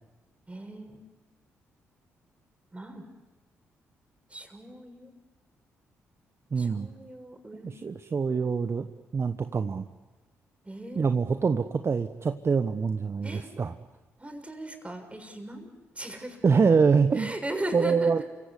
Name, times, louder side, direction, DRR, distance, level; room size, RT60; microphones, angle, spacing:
voice 1, 0.5-1.0 2.7-3.0 4.3-5.1 6.6-7.8 10.6-11.2 13.2-13.5 14.2-15.7 15.9-16.4 17.1-18.2, right 1 dB, 20° right, 5 dB, 6.5 m, -38 dB
voice 2, 6.5-6.9 7.6-8.9 9.1-9.9 11.0-13.7 16.4-17.3 17.7-18.2, right 5 dB, 40° right, 9 dB, 1.1 m, -25 dB
29.5 x 16.5 x 9.7 m, 1.3 s
hypercardioid pair, 40°, 7 cm